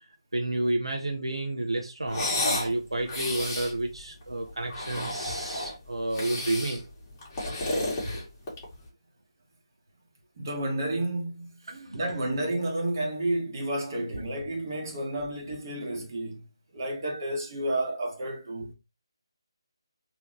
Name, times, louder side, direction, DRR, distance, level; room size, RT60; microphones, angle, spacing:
voice 1, 0.3-6.8 8.1-8.2 11.7-12.0 14.0-14.2, right 2 dB, 80° right, 0.8 m, -31 dB
sound 1, 2.1-2.7 3.1-3.7 4.6-5.8 6.1-6.8 7.2-8.7, left 1 dB, 25° left, 1.9 m, -31 dB
voice 2, 10.4-11.5 11.9-16.4 16.7-18.7, right 1 dB, 40° right, 1.6 m, -31 dB
3.7 x 3.2 x 3.1 m
figure-of-eight pair, 150°, 3 cm